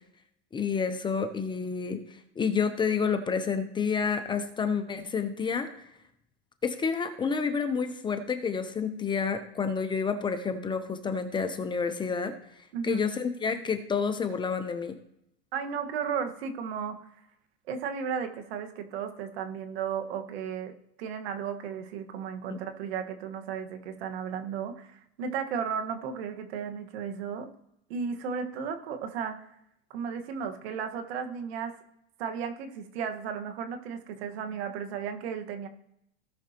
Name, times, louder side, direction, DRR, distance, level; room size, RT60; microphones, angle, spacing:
voice 1, 0.5-5.7 6.6-12.3 12.8-15.0 22.5-22.6, left 5 dB, 15° left, 8 dB, 0.6 m, -29 dB
voice 2, 15.5-17.0 17.7-20.7 21.0-27.5 27.9-29.4 29.9-31.8 32.2-35.7, right 7 dB, 75° right, 6 dB, 1.5 m, -34 dB
17.0 x 6.1 x 2.9 m, 0.77 s
supercardioid pair, 145°, 31 cm